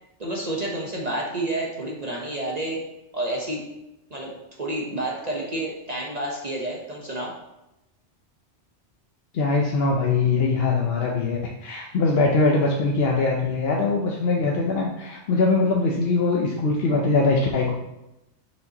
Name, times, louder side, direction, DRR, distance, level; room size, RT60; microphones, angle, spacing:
voice 1, 0.2-2.8 3.1-3.6 4.1-4.3 4.6-7.3, right 1 dB, 40° right, -2 dB, 1.0 m, -29 dB
voice 2, 9.3-17.7, left 3 dB, 65° left, -1 dB, 0.9 m, -22 dB
6.6 x 6.5 x 2.9 m, 0.92 s
omnidirectional pair, 1.1 m